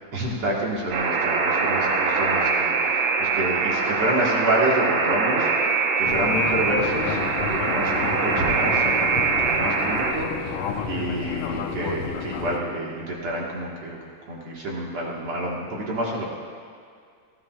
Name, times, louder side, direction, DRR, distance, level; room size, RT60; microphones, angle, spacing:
voice 1, 0.1-10.6 10.9-14.0 14.3-16.3, right 1 dB, 50° right, -3 dB, 2.2 m, -28 dB
Alarm, 0.9-10.1, right 4 dB, 85° right, 2.7 m, -23 dB
Fixed-wing aircraft airplane, 6.0-12.6, left 7 dB, 80° left, 2.2 m, -31 dB
19.0 x 14.0 x 2.4 m, 2.2 s
omnidirectional pair, 3.7 m